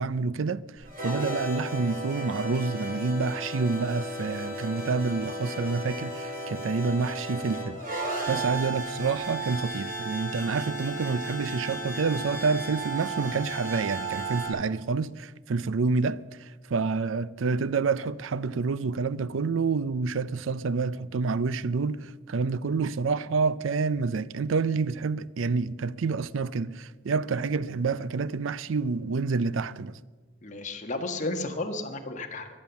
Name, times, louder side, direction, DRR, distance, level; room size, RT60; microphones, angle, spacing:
voice 1, 0.0-7.8 8.3-30.0, right 4 dB, 80° right, 0.5 m, -28 dB
sound 1, 0.8-14.5, right 1 dB, 45° right, 5.2 m, -34 dB
voice 2, 30.4-32.5, left 2 dB, 40° left, 1.5 m, -33 dB
23.5 x 8.8 x 7.0 m
head